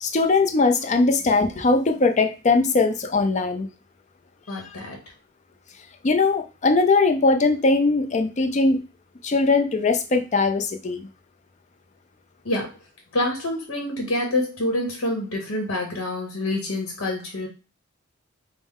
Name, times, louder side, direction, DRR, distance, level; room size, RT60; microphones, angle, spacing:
voice 1, 0.0-3.7 6.0-8.8 9.2-11.1, left 3 dB, 35° left, 6 dB, 0.5 m, -20 dB
voice 2, 4.5-5.0 12.4-12.7 13.1-17.5, left 1 dB, 75° left, 1 dB, 1.0 m, -27 dB
4.9 x 2.1 x 3.6 m, 0.32 s
head